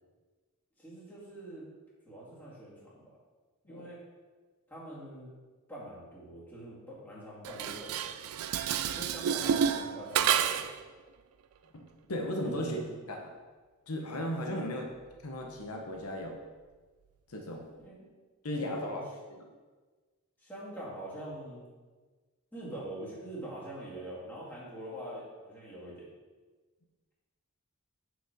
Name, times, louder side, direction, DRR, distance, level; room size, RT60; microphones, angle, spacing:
voice 1, 0.8-1.7 2.1-3.2 3.6-4.0 4.7-5.3 5.7-8.1 8.9-10.6 12.4-12.9 17.8-18.2 18.5-19.0 20.4-21.7 22.5-26.0, right 1 dB, 10° left, -8 dB, 2.2 m, -44 dB
Dishes pots and pans, 7.4-10.8, right 8 dB, 75° right, 0.4 m, -30 dB
voice 2, 12.1-12.8 13.1-13.2 13.9-14.9 15.2-16.4 17.3-17.7 18.4-19.0 19.4-19.5, left 1 dB, 80° left, 1 dB, 1.0 m, -36 dB
6.4 x 5.0 x 5.0 m, 1.4 s
head